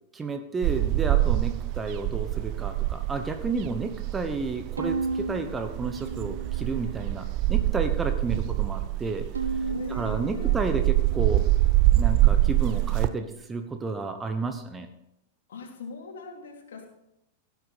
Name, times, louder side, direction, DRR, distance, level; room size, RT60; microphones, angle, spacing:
voice 1, 0.1-9.5 9.9-11.5 12.0-14.9, right 3 dB, 15° right, 7 dB, 1.1 m, -31 dB
sound 1, 0.6-13.1, right 16 dB, 40° right, 0.5 m, -25 dB
Bowed string instrument, 4.8-7.1 7.6-8.4 9.4-11.9, right 4 dB, 75° right, 0.8 m, -35 dB
voice 2, 9.6-10.8 15.5-16.9, left 4 dB, 60° left, 1 dB, 2.9 m, -42 dB
17.0 x 8.3 x 4.2 m, 0.85 s
figure-of-eight pair, 95°, 0 cm